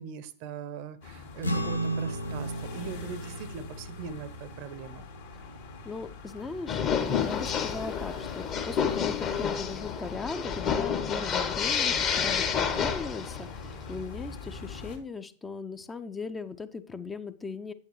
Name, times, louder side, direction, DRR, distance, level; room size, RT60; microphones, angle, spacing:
voice 1, 0.0-5.1, right 7 dB, 45° right, 16 dB, 0.6 m, -41 dB
sound 1, 1.0-15.0, left 5 dB, 60° left, 1.9 m, -44 dB
sound 2, 1.4-8.1, right 1 dB, 80° left, 0.6 m, -36 dB
voice 2, 5.8-17.7, left 4 dB, 15° left, 11 dB, 0.5 m, -38 dB
sound 3, 6.7-13.5, left 7 dB, 30° left, 1.0 m, -29 dB
8.5 x 8.1 x 3.2 m, 0.42 s
figure-of-eight pair, 90°, 0 cm